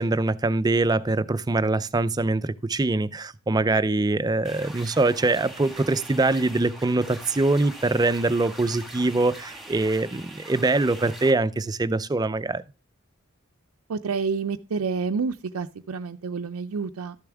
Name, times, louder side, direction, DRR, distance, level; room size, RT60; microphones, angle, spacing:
voice 1, 0.0-12.6, right 2 dB, 20° right, 0.4 m, -23 dB
sound 1, 4.4-11.3, right 1 dB, ahead, 1.5 m, -42 dB
voice 2, 13.9-17.2, right 5 dB, 85° right, 0.5 m, -29 dB
12.5 x 6.8 x 3.5 m
head